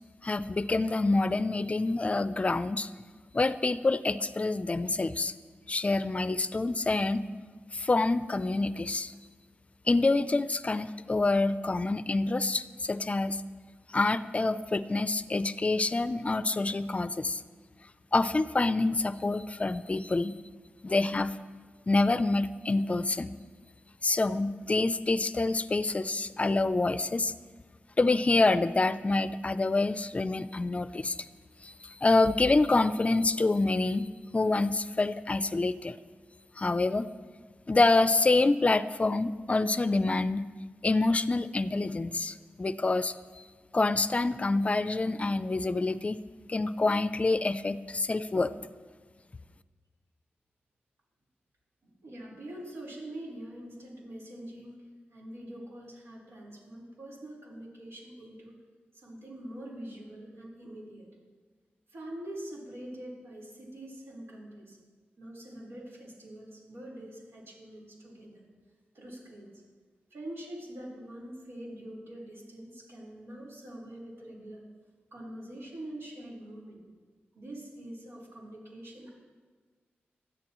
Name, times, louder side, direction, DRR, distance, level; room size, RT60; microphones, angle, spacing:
voice 1, 0.2-2.9 3.3-5.3 5.7-7.2 7.7-9.1 9.9-13.4 13.9-17.4 18.1-20.4 20.8-21.3 21.9-23.3 24.0-27.3 28.0-31.2 31.6-34.1 34.3-36.0 36.6-37.1 37.7-40.5 40.8-43.1 43.7-46.2 46.5-48.5, left 3 dB, 35° left, 14 dB, 0.5 m, -27 dB
voice 2, 51.8-54.8 55.1-58.6 58.9-61.1 61.9-64.8 65.2-68.4 68.9-69.5 70.1-74.6 75.1-76.8 77.3-79.1, right 1 dB, 90° right, -4 dB, 4.3 m, -44 dB
20.0 x 13.5 x 3.1 m, 1.5 s
wide cardioid pair, 80°, 4 cm